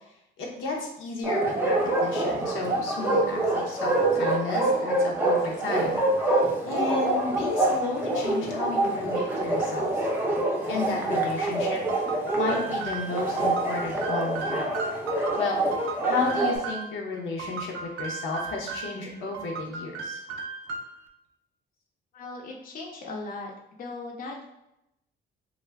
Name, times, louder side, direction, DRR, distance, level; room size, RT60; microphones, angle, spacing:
voice 1, 0.4-10.1 10.7-14.7 15.4-20.2, left 3 dB, 85° left, -1 dB, 0.7 m, -32 dB
Bark, 1.2-16.6, right 2 dB, 10° right, 0.5 m, -26 dB
sound 1, 11.9-17.0 17.4-19.0 19.3-21.1, right 4 dB, 85° right, 0.4 m, -36 dB
voice 2, 22.1-23.5 23.8-24.4, left 3 dB, 45° left, -1 dB, 0.5 m, -38 dB
2.3 x 2.0 x 3.3 m, 0.84 s
cardioid pair, 90°, 20 cm